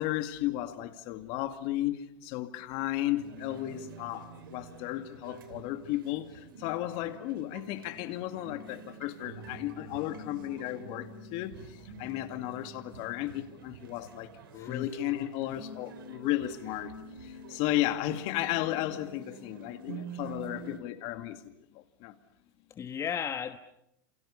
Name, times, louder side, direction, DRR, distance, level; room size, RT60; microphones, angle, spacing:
voice 1, 0.0-16.9 17.2-22.1, left 14 dB, 55° left, 2.3 m, -34 dB
sound 1, 3.2-20.8, right 4 dB, 85° right, 3.3 m, -47 dB
voice 2, 14.6-15.0 22.8-23.6, left 8 dB, 25° left, 1.4 m, -35 dB
29.0 x 28.0 x 7.1 m
hypercardioid pair, 115°, 11 cm